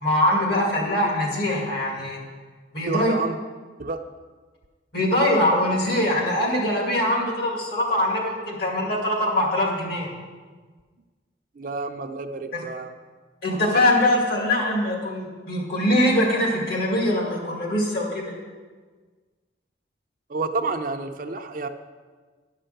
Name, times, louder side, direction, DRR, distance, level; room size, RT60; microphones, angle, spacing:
voice 1, 0.0-2.2 2.7-3.1 4.9-10.1 12.5-12.6 13.4-18.3, left 1 dB, 60° left, -1 dB, 2.4 m, -22 dB
voice 2, 2.9-3.4 3.8-4.0 11.5-12.9 20.3-21.7, right 3 dB, 50° right, 6 dB, 0.6 m, -29 dB
10.5 x 5.6 x 6.5 m, 1.4 s
head